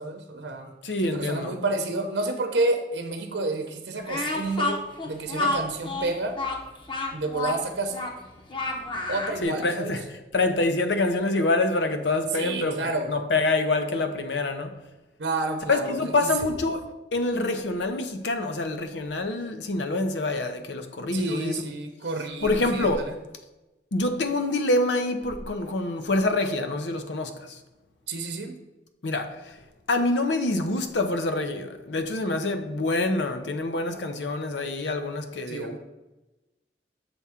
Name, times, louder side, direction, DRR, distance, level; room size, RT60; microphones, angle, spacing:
voice 1, 0.0-0.8 1.0-6.4 7.1-7.9 9.1-9.9 12.3-13.2 15.2-16.5 21.1-23.1 28.1-28.6 35.5-35.8, right 2 dB, 80° right, 0.8 m, -30 dB
voice 2, 0.8-1.5 9.4-12.8 13.1-14.8 15.7-21.6 22.4-23.1 23.9-27.6 29.0-29.6 29.9-35.8, left 2 dB, 85° left, 0.7 m, -26 dB
Speech, 4.0-9.4, left 2 dB, 30° left, 0.8 m, -30 dB
7.1 x 3.6 x 5.7 m
head